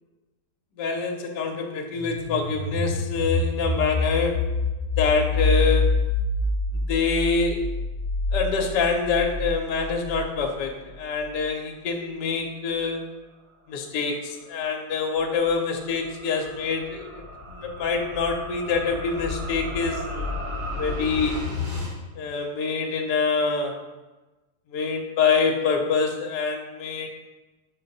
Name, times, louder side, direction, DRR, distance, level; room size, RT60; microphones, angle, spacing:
voice 1, 0.8-4.5 5.0-6.1 6.7-7.7 8.3-13.1 13.7-17.2 17.5-20.3 20.8-21.4 22.2-23.8 24.7-27.1, left 5 dB, 70° left, 2 dB, 1.3 m, -26 dB
sound 1, 1.9-10.6, left 2 dB, 25° left, 1.6 m, -26 dB
sound 2, 14.1-21.9, left 2 dB, 35° right, 1.5 m, -34 dB
7.0 x 2.6 x 5.2 m, 1.1 s
omnidirectional pair, 1.9 m